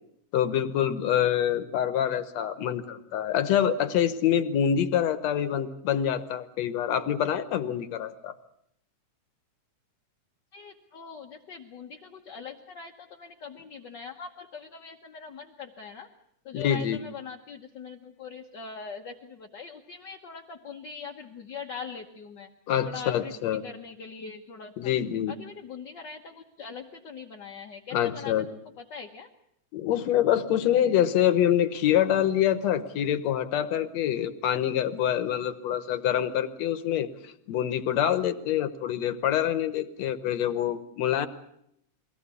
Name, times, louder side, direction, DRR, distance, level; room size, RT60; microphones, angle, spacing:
voice 1, 0.3-8.3 16.5-17.0 22.7-23.6 24.8-25.3 27.9-28.5 29.7-41.3, left 10 dB, 70° left, 12 dB, 2.2 m, -26 dB
voice 2, 10.5-16.1 16.4-22.5 22.8-24.9 25.4-28.3 28.8-29.3, left 5 dB, 55° left, 1 dB, 1.3 m, -42 dB
22.5 x 18.0 x 8.3 m, 0.75 s
omnidirectional pair, 3.4 m